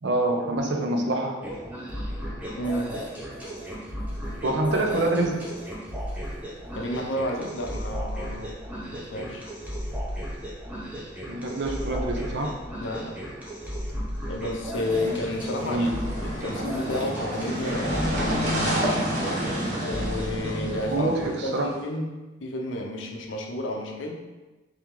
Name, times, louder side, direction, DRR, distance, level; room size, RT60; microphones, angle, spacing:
voice 1, 0.0-1.4 4.4-5.5 11.3-12.5 15.0-15.1 15.6-16.0 20.9-21.7, right 2 dB, 60° right, 2 dB, 0.5 m, -26 dB
sound 1, 1.4-21.3, equal, 5° right, 0.6 m, -35 dB
voice 2, 2.6-3.0 6.8-8.6 8.9-9.5 12.8-13.2 14.3-15.9 16.2-19.0 19.8-21.1 21.4-24.2, left 1 dB, 65° left, 2 dB, 0.6 m, -31 dB
sound 2, 14.8-21.8, equal, 40° right, 0.9 m, -29 dB
3.4 x 3.0 x 3.7 m, 1.1 s
head